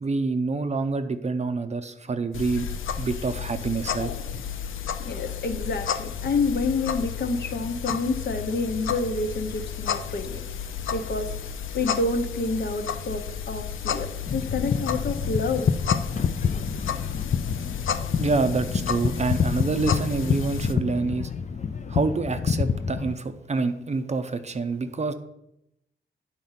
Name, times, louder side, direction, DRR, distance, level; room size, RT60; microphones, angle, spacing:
voice 1, 0.0-2.7 3.0-4.1 18.2-21.3 21.9-25.1, right 4 dB, 35° right, 9 dB, 0.5 m, -27 dB
sound 1, 2.3-20.7, left 8 dB, 90° left, 0.5 m, -32 dB
voice 2, 5.0-10.4 10.9-11.3 11.7-15.7, left 3 dB, 60° left, 6 dB, 0.9 m, -28 dB
sound 2, 14.3-23.1, left 6 dB, 40° left, 0.4 m, -27 dB
9.3 x 4.1 x 5.7 m, 0.84 s
wide cardioid pair, 130°, 20 cm